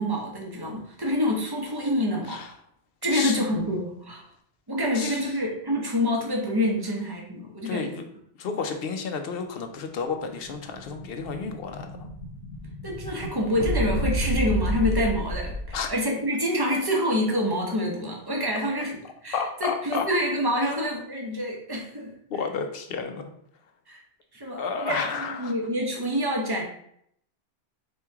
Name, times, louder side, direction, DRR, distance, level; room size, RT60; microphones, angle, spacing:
voice 1, 0.0-2.4 3.0-4.2 4.7-7.9 12.8-18.9 19.2-22.1 23.9-24.0 24.3-25.0 25.4-26.6, equal, 20° right, 0 dB, 0.8 m, -27 dB
voice 2, 3.1-3.4 4.9-5.3 7.6-8.0 8.4-12.1 15.7-15.9 19.3-20.1 20.6-20.8 22.3-23.3 24.6-25.5, left 5 dB, 60° left, 6 dB, 0.7 m, -31 dB
Explosion, 10.1-16.0, equal, 80° left, 1.0 m, -31 dB
4.3 x 3.1 x 3.5 m, 0.69 s
omnidirectional pair, 1.2 m